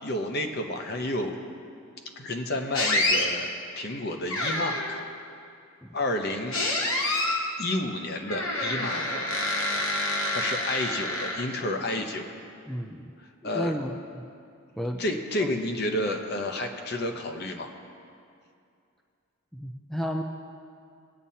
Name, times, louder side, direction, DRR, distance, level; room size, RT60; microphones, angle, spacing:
voice 1, 0.0-1.3 2.2-3.5 3.8-5.0 5.9-6.6 7.6-9.3 10.3-12.3 13.4-13.7 15.0-17.7, left 1 dB, 50° left, 4 dB, 0.9 m, -30 dB
sound 1, 2.7-3.3 4.3-5.0 6.5-7.5 8.3-11.7, left 1 dB, 70° left, 1.2 m, -27 dB
voice 2, 12.7-13.1 13.4-14.3 14.8-15.0 15.4-15.6 19.5-20.2, equal, ahead, 2 dB, 0.4 m, -33 dB
19.0 x 8.8 x 2.8 m, 2.4 s
head